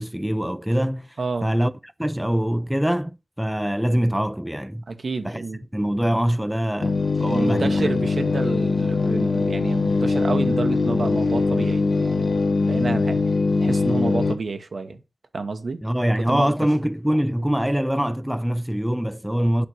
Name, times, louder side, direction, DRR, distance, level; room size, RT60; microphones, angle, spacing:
voice 1, 0.0-1.2 1.4-1.7 2.0-4.8 5.2-5.4 5.7-7.8 8.2-8.3 15.8-19.7, equal, 5° right, 0.4 m, -23 dB
voice 2, 1.2-1.5 4.9-5.7 7.3-12.3 12.6-13.2 13.6-15.0 15.3-15.8 16.3-16.5, right 3 dB, 80° right, 0.9 m, -29 dB
sound 1, 6.8-14.4, left 3 dB, 75° left, 0.8 m, -22 dB
8.4 x 2.9 x 6.1 m
wide cardioid pair, 60°, 0 cm